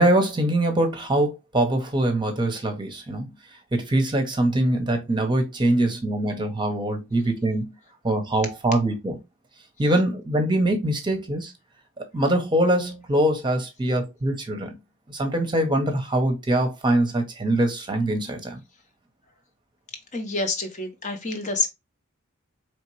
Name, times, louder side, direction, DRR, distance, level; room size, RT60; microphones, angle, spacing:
voice 1, 0.0-3.3 3.7-7.7 8.0-9.2 9.8-11.5 12.0-14.7 15.1-18.6, right 1 dB, 20° right, 0.8 m, -23 dB
voice 2, 20.1-21.7, left 3 dB, 35° left, 0.8 m, -27 dB
4.3 x 3.2 x 3.1 m
head